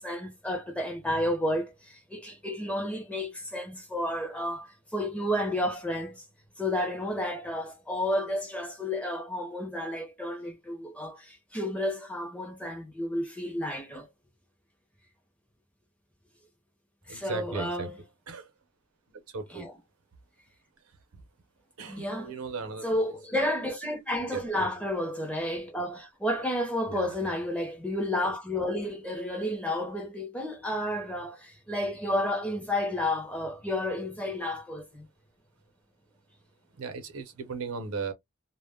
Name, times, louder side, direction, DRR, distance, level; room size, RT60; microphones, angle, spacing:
voice 1, 0.0-6.2 6.6-14.1 17.1-18.0 19.5-19.7 21.9-22.3 22.8-35.1, left 1 dB, 5° left, 0.6 m, -31 dB
voice 2, 17.1-17.9 18.3-18.5 19.1-19.7 21.1-21.2 21.8-23.1 24.2-24.7 26.9-27.3 36.8-38.1, right 4 dB, 75° right, 0.6 m, -37 dB
2.1 x 2.0 x 3.3 m
head